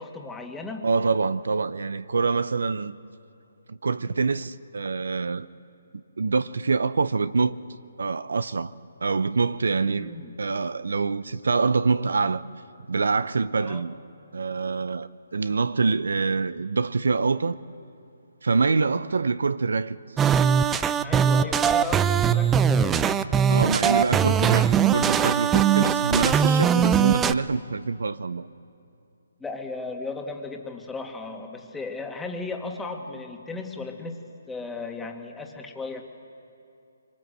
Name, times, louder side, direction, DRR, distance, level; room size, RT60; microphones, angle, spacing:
voice 1, 0.0-0.9 10.0-10.3 13.6-13.8 21.0-23.2 29.4-36.0, left 3 dB, 5° left, 2.0 m, -35 dB
voice 2, 0.8-3.0 3.7-5.5 5.9-7.6 8.0-8.7 9.0-12.4 12.9-13.9 14.3-17.6 18.4-20.0 23.5-28.5, right 4 dB, 75° right, 0.7 m, -25 dB
sound 1, 20.2-27.3, right 8 dB, 15° right, 0.5 m, -21 dB
25.5 x 23.5 x 7.9 m
figure-of-eight pair, 145°, 0 cm